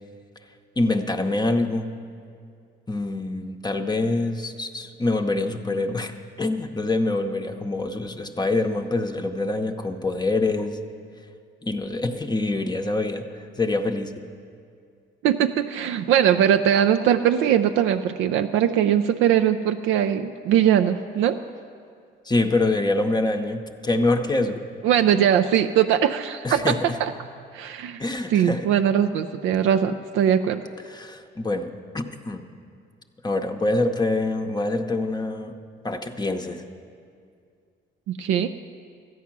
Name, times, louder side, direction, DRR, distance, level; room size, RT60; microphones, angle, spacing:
voice 1, 0.8-1.9 2.9-6.1 6.4-10.8 11.6-13.3 13.6-14.1 22.3-24.6 26.4-27.0 28.0-28.7 30.9-32.4 33.2-35.6 35.8-36.6, left 2 dB, 20° left, 5 dB, 0.7 m, -25 dB
voice 2, 15.2-21.4 24.8-27.1 27.5-28.0 28.3-30.6 38.1-38.5, right 9 dB, 90° right, 8 dB, 0.4 m, -21 dB
13.0 x 9.4 x 6.0 m, 2.3 s
cardioid pair, 90°, 20 cm